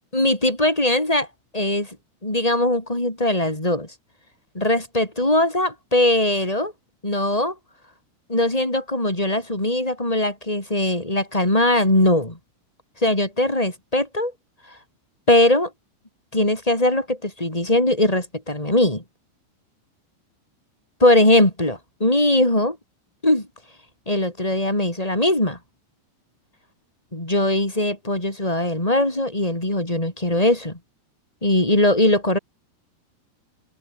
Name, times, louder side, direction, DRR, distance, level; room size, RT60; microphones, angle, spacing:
voice 1, 0.1-1.3 1.5-2.0 2.2-3.9 4.5-6.7 7.0-7.5 8.3-12.4 13.0-14.3 14.7-14.8 15.3-15.7 16.3-19.0 21.0-22.8 23.2-23.5 24.1-25.6 27.1-30.8 31.4-32.4, left 1 dB, 10° left, 4.6 m, -20 dB
open air
omnidirectional pair, 5.0 m